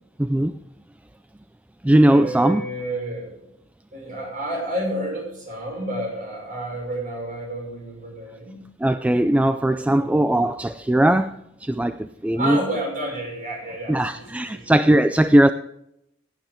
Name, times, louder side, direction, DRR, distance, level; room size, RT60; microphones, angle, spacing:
voice 1, 0.2-0.5 1.8-2.6 8.8-11.3 11.7-12.0 12.2-12.6 13.9-15.5, right 1 dB, 5° right, 11 dB, 0.3 m, -18 dB
voice 2, 2.0-3.4 3.9-8.6 9.9-10.1 12.4-14.7, right 1 dB, 45° right, -1 dB, 6.0 m, -30 dB
17.0 x 9.1 x 3.6 m, 0.78 s
head